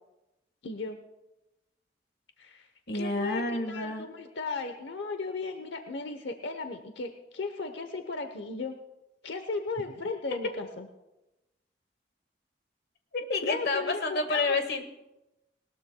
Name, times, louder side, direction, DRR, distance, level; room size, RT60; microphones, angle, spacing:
voice 1, 0.6-1.0 2.4-2.7 2.9-8.8 9.2-10.9 13.4-14.5, left 3 dB, 90° left, 7 dB, 0.9 m, -36 dB
voice 2, 2.9-4.0 13.1-14.8, left 3 dB, 60° left, 6 dB, 1.5 m, -29 dB
19.5 x 19.5 x 2.2 m, 0.96 s
head